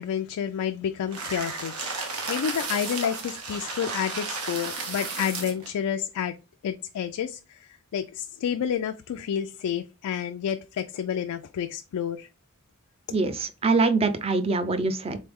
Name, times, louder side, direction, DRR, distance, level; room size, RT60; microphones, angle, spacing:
voice 1, 0.0-1.7 2.3-6.4 6.6-12.3, left 8 dB, 85° left, 0.3 m, -30 dB
sound 1, 1.1-5.7, right 3 dB, 85° right, 1.1 m, -33 dB
voice 2, 13.1-15.2, right 3 dB, 25° right, 0.4 m, -24 dB
3.8 x 3.1 x 3.5 m
head